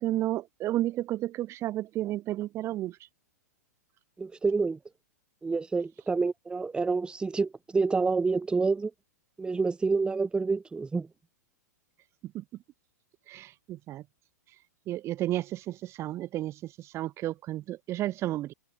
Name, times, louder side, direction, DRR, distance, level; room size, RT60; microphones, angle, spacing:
voice 1, 0.0-3.0 12.2-12.4 13.3-14.0 14.9-18.5, right 14 dB, 30° right, 2.7 m, -32 dB
voice 2, 4.2-4.8 5.4-8.9 9.4-11.1, right 4 dB, 10° right, 2.6 m, -28 dB
figure-of-eight pair, 110°, 9 cm